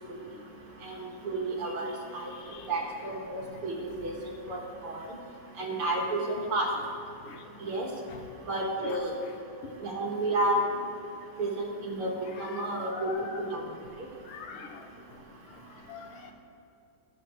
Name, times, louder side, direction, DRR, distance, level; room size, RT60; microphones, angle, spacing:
voice 1, 0.8-2.2 2.7-4.1 4.5-4.6 4.8-5.1 5.6-6.7 7.6-7.9 8.5-9.1 9.8-10.6 11.4-12.1 12.4-13.1 13.4-13.6, right 2 dB, 80° right, -2 dB, 2.6 m, -31 dB
voice 2, 7.3-7.7 8.1-8.3 8.8-9.0 12.2-13.6 14.3-14.9 15.9-16.3, left 4 dB, 80° left, 5 dB, 1.7 m, -43 dB
19.0 x 6.7 x 3.1 m, 2.5 s
omnidirectional pair, 2.4 m